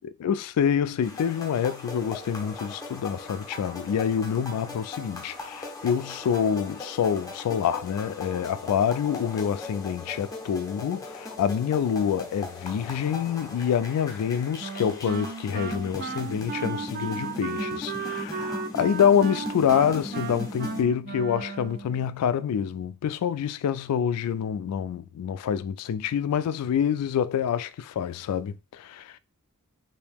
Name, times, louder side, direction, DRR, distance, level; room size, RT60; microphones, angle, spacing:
voice 1, 0.2-29.1, left 8 dB, 90° left, 0.3 m, -26 dB
sound 1, 1.0-20.8, left 2 dB, 15° left, 0.7 m, -39 dB
Wind instrument woodwind instrument, 14.6-22.0, right 5 dB, 40° right, 0.4 m, -35 dB
2.9 x 2.6 x 3.4 m
head